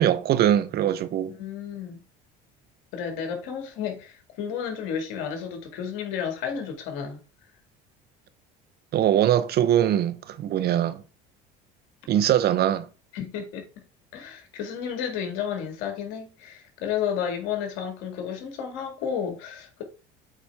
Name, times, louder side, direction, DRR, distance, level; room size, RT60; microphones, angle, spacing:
voice 1, 0.0-1.3 8.9-11.0 12.1-12.9, right 11 dB, 50° right, 0.8 m, -22 dB
voice 2, 1.3-2.0 2.9-7.2 13.1-13.6 14.1-19.8, left 8 dB, 75° left, 2.0 m, -32 dB
8.1 x 4.3 x 3.4 m
supercardioid pair, 95°, 21 cm